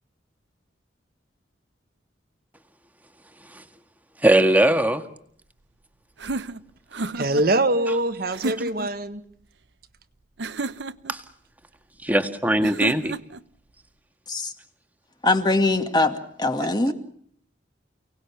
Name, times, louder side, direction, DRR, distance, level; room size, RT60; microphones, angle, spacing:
voice 1, 4.2-5.0 11.1-11.2 12.0-13.1, right 1 dB, 10° right, 7 dB, 1.8 m, -19 dB
sound 1, 6.2-7.5 8.3-8.9 10.4-11.2 12.6-13.4, right 3 dB, 70° right, 0.9 m, -31 dB
voice 2, 7.1-9.2 16.6-16.9, right 1 dB, 50° right, 9 dB, 1.5 m, -24 dB
voice 3, 15.2-16.9, left 2 dB, 20° left, 7 dB, 2.2 m, -22 dB
30.0 x 19.0 x 7.2 m, 0.65 s
head